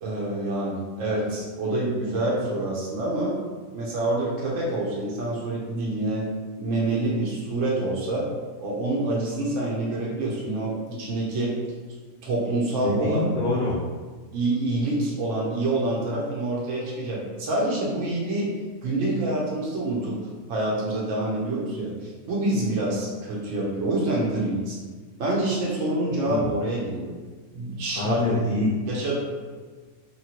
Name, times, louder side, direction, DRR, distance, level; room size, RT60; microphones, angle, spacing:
voice 1, 0.0-3.4 3.7-6.3 6.6-8.3 8.6-11.5 12.2-13.3 14.3-18.5 18.8-20.2 20.5-24.8 25.2-27.1 27.5-28.2 28.9-29.1, right 2 dB, 65° right, -5 dB, 0.9 m, -26 dB
voice 2, 12.8-13.8 26.3-26.5 28.0-28.8, left 2 dB, 60° left, -6 dB, 0.6 m, -25 dB
2.9 x 2.5 x 2.8 m, 1.4 s
omnidirectional pair, 1.5 m